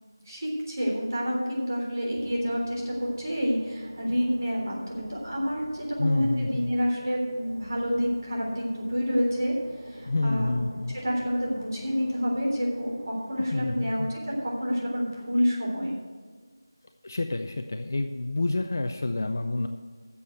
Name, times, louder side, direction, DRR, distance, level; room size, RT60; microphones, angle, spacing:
voice 1, 0.3-9.5 9.8-10.6 10.9-15.9, equal, 50° right, -3 dB, 3.6 m, -28 dB
sound 1, 2.2-15.5, equal, 90° right, 2.5 m, -47 dB
voice 2, 6.0-6.7 10.1-11.0 13.5-14.1 17.0-19.7, left 2 dB, 40° left, 6 dB, 0.5 m, -28 dB
9.9 x 7.0 x 8.1 m, 1.5 s
figure-of-eight pair, 170°, 2 cm